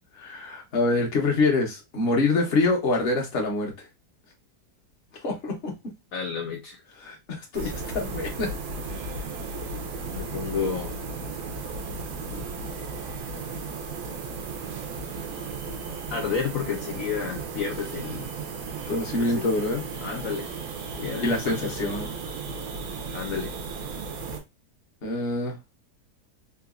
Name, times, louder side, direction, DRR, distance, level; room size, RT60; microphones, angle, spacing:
voice 1, 0.1-3.7 5.2-5.7 7.0-8.5 18.9-19.8 21.2-22.1 25.0-25.5, left 2 dB, 45° left, 1.1 m, -25 dB
voice 2, 6.1-6.8 10.1-11.0 12.3-12.5 16.1-18.3 19.2-19.4 20.0-20.5 21.0-21.7 23.1-23.5, left 6 dB, 65° left, 0.9 m, -31 dB
sound 1, 7.5-24.4, right 4 dB, 75° right, 1.2 m, -35 dB
3.9 x 2.6 x 2.4 m
omnidirectional pair, 1.8 m